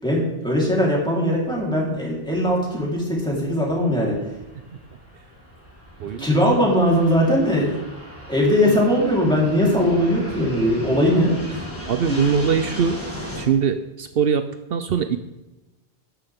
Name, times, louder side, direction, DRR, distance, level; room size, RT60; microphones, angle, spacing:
voice 1, 0.0-4.2 6.2-7.8 8.3-11.7 12.1-12.2, equal, 5° left, -4 dB, 3.8 m, -20 dB
Fixed-wing aircraft airplane, 1.4-13.4, equal, 15° right, 3.2 m, -38 dB
voice 2, 6.0-6.4 11.9-13.0 13.4-14.4 14.7-15.2, right 7 dB, 70° right, 9 dB, 0.8 m, -21 dB
12.5 x 10.5 x 3.6 m, 1.0 s
omnidirectional pair, 1.0 m